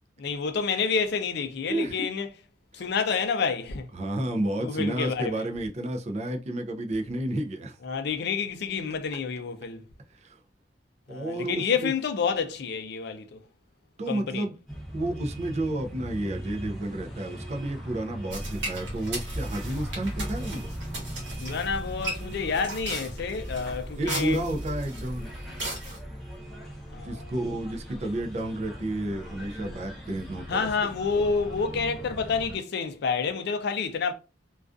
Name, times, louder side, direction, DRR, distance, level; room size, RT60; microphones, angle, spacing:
voice 1, 0.2-2.3 2.7-3.9 4.6-5.4 7.8-9.8 11.1-13.4 14.1-14.4 21.4-24.4 26.9-27.2 30.5-34.1, left 5 dB, 65° left, 0.4 m, -29 dB
voice 2, 1.7-2.0 2.7-2.9 3.9-7.8 10.1-10.4 11.1-11.9 14.0-14.5 14.9-20.7 24.0-25.3 27.0-30.9, right 1 dB, 35° right, 0.4 m, -31 dB
sound 1, 14.7-32.6, equal, ahead, 0.7 m, -39 dB
sound 2, 18.3-26.0, right 1 dB, 80° right, 1.1 m, -37 dB
2.4 x 2.3 x 2.4 m
head